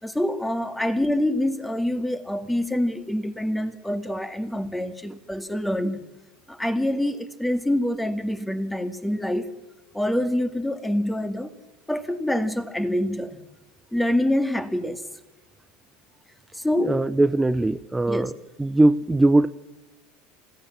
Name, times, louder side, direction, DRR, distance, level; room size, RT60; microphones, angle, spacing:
voice 1, 0.0-6.0 6.5-9.5 9.9-11.5 11.9-13.4 13.9-15.0 16.5-16.9 18.1-18.3, left 1 dB, 5° left, 2.1 m, -26 dB
voice 2, 16.8-18.3 18.6-19.5, right 2 dB, 10° right, 0.7 m, -20 dB
26.0 x 16.5 x 7.5 m
hypercardioid pair, 80°, 0 cm